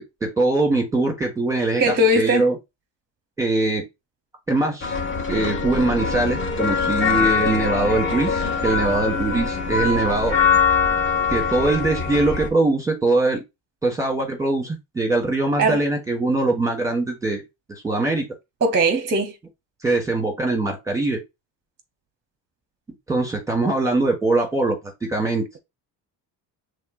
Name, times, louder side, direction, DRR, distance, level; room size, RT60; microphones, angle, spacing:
voice 1, 0.0-2.6 3.4-3.8 4.5-4.9 5.3-10.4 11.3-13.4 13.8-17.4 17.8-18.3 19.8-21.2 23.1-25.4, right 2 dB, 10° right, 1.3 m, -22 dB
voice 2, 1.8-2.5 15.6-15.8 18.6-19.4, right 1 dB, 25° right, 0.7 m, -19 dB
sound 1, 4.8-12.5, left 5 dB, 30° left, 1.1 m, -23 dB
6.3 x 3.3 x 2.4 m
cardioid pair, 140°, 40 cm